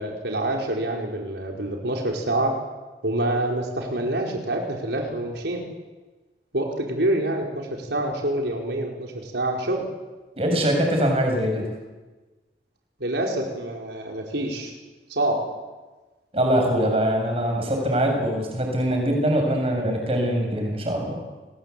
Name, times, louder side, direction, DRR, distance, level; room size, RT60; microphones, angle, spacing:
voice 1, 0.0-2.5 3.0-5.6 6.5-9.8 13.0-14.7 15.1-15.4, right 1 dB, 80° right, 0 dB, 4.9 m, -26 dB
voice 2, 10.4-11.7 16.3-21.2, equal, 35° right, 2 dB, 7.1 m, -23 dB
30.0 x 21.5 x 8.5 m, 1.2 s
head